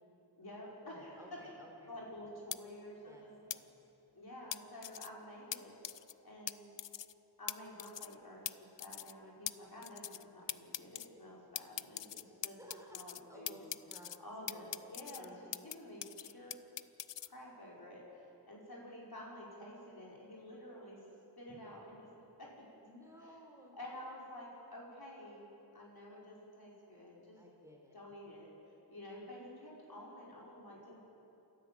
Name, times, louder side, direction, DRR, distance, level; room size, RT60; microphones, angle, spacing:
voice 1, 0.4-1.4 1.9-3.5 4.1-5.8 6.2-6.7 7.4-13.7 14.2-16.6 17.2-21.0 21.4-22.1 22.4-22.5 23.2-23.4 23.8-27.4 27.9-31.1, left 1 dB, 60° left, -4 dB, 5.3 m, -50 dB
voice 2, 0.9-1.9 3.0-3.7 12.4-15.7 22.8-23.8 27.4-28.0, equal, 5° right, -1 dB, 4.0 m, -57 dB
sound 1, 2.5-2.6 3.5-3.6 4.5-5.1 5.5-5.6 5.8-6.1 6.5-6.6 6.8-7.1 7.5-7.6 7.8-8.1 8.5-8.6 8.8-9.1 9.5-9.6 9.8-10.2 10.5-11.1 11.5-13.2 13.5-14.2 14.5-15.7 16.0-17.3, left 11 dB, 90° left, 0.5 m, -41 dB
28.5 x 13.0 x 7.8 m, 3.0 s
wide cardioid pair, 65°, 42 cm